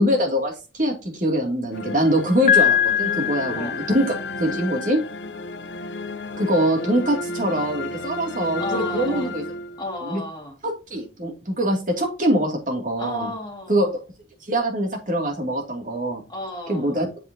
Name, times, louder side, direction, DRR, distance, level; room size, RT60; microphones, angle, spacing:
voice 1, 0.0-5.0 6.4-9.4 10.0-10.2 10.6-13.3 13.7-13.9 14.5-16.2 16.7-17.1, equal, 45° right, 2 dB, 2.6 m, -23 dB
sound 1, 1.7-10.1, left 2 dB, 80° left, 0.8 m, -32 dB
Piano, 2.5-4.4, left 10 dB, 40° left, 0.6 m, -21 dB
voice 2, 8.6-9.3 9.8-10.6 13.0-13.9 16.3-17.0, left 1 dB, 25° left, 1 dB, 2.3 m, -33 dB
7.6 x 6.0 x 2.8 m, 0.30 s
head